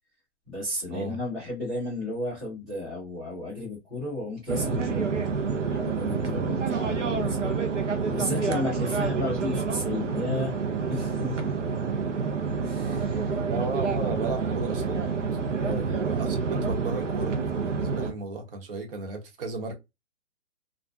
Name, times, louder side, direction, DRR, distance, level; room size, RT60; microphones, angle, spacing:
voice 1, 0.5-5.1 5.6-7.6 8.1-10.6 10.9-11.6 12.6-13.4 15.6-15.9, left 2 dB, ahead, 0.4 m, -33 dB
sound 1, 4.5-18.1, right 5 dB, 90° right, 0.7 m, -28 dB
voice 2, 13.5-15.0 15.8-19.7, right 3 dB, 50° right, 0.9 m, -35 dB
2.4 x 2.1 x 2.4 m
hypercardioid pair, 145°, 36 cm